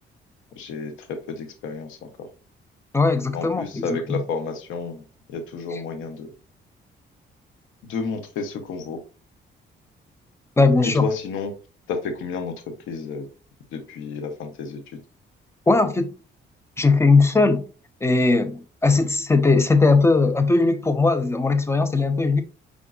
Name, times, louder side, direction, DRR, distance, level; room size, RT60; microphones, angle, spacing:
voice 1, 0.6-2.3 3.3-5.0 5.3-6.3 7.8-9.0 10.8-11.5 11.9-13.3 13.7-15.0, left 4 dB, 90° left, 0.8 m, -31 dB
voice 2, 2.9-4.2 10.6-11.1 15.7-16.1 16.8-17.6 18.0-22.4, left 3 dB, 15° left, 0.6 m, -19 dB
5.0 x 3.6 x 2.4 m
cardioid pair, 90°, 20 cm